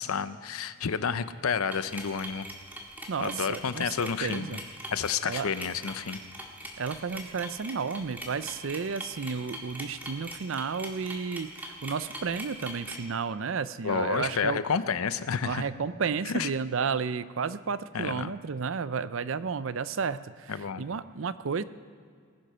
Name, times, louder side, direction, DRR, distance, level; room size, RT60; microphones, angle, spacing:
voice 1, 0.0-2.5 3.2-4.6 4.9-6.2 13.8-15.6 16.3-16.5 17.9-18.3 20.5-20.8, left 6 dB, 85° left, 14 dB, 0.6 m, -30 dB
sound 1, 1.7-13.0, right 1 dB, 10° right, 1.8 m, -41 dB
voice 2, 3.1-4.6 5.3-5.5 6.8-14.6 15.4-21.6, right 5 dB, 65° right, 15 dB, 0.5 m, -32 dB
19.5 x 9.2 x 5.6 m, 2.1 s
head